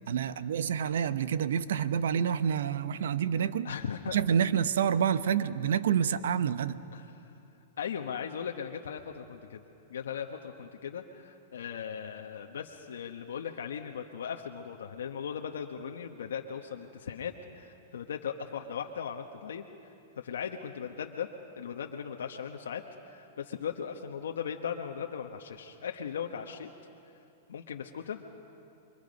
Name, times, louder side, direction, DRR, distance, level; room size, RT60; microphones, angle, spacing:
voice 1, 0.1-3.7 4.1-6.8, right 8 dB, 80° right, 14 dB, 0.8 m, -28 dB
voice 2, 3.6-4.4 6.9-7.2 7.8-9.6 9.9-19.6 20.2-21.3 21.6-26.7 27.5-28.3, left 7 dB, 90° left, 2 dB, 1.1 m, -38 dB
28.5 x 24.0 x 5.3 m, 2.7 s
hypercardioid pair, 130°, 0 cm